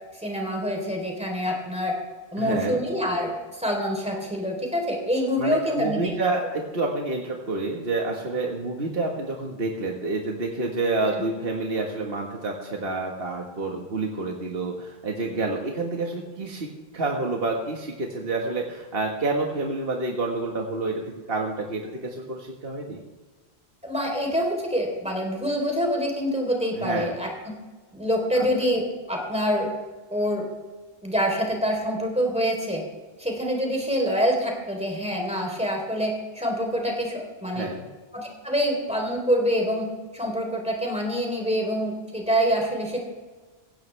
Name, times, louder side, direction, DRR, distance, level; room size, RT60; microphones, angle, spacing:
voice 1, 0.2-1.9 2.3-6.1 11.0-11.1 23.8-27.6 27.9-29.7 30.1-30.5 31.0-32.8 33.2-37.7 38.1-43.0, equal, 5° right, 1 dB, 3.6 m, -26 dB
voice 2, 2.4-2.8 5.4-16.7 16.9-21.0 21.3-23.0 26.8-27.2 28.4-28.5 37.5-37.9, right 3 dB, 60° right, 0 dB, 1.8 m, -28 dB
17.0 x 16.0 x 3.4 m, 1.3 s
omnidirectional pair, 1.1 m